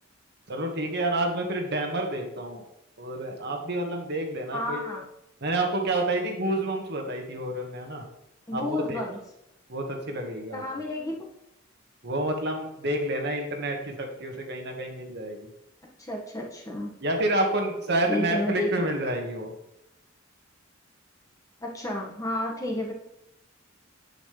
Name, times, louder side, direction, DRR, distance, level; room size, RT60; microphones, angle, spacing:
voice 1, 0.5-2.6 3.0-4.8 5.4-8.0 8.5-9.0 9.7-10.6 12.0-15.5 17.0-19.5, right 1 dB, 55° right, 2 dB, 1.8 m, -29 dB
voice 2, 4.5-5.0 8.5-9.2 10.5-11.1 16.0-16.9 18.1-19.0 21.6-22.9, left 1 dB, 15° left, -2 dB, 1.8 m, -31 dB
9.4 x 8.9 x 3.4 m, 0.85 s
head